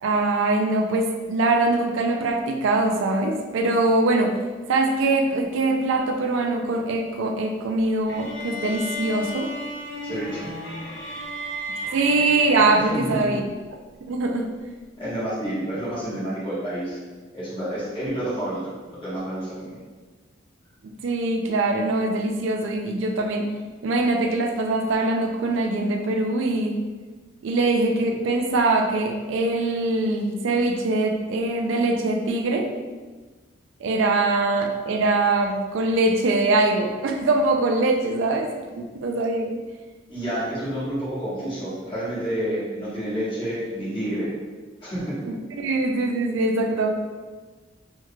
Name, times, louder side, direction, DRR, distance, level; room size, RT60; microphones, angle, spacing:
voice 1, 0.0-4.4 4.7-9.5 11.9-13.4 14.0-14.5 21.0-23.5 23.8-26.8 27.4-32.7 33.8-39.6 45.2-46.9, right 2 dB, 85° right, 3 dB, 0.4 m, -23 dB
sound 1, 8.1-13.3, left 1 dB, 65° left, 0.7 m, -34 dB
voice 2, 10.0-10.5 12.9-13.3 15.0-17.0 17.3-18.6 18.9-19.7 40.1-44.3 44.8-45.2, right 1 dB, 25° left, -9 dB, 1.2 m, -29 dB
3.4 x 3.0 x 2.2 m, 1.4 s
head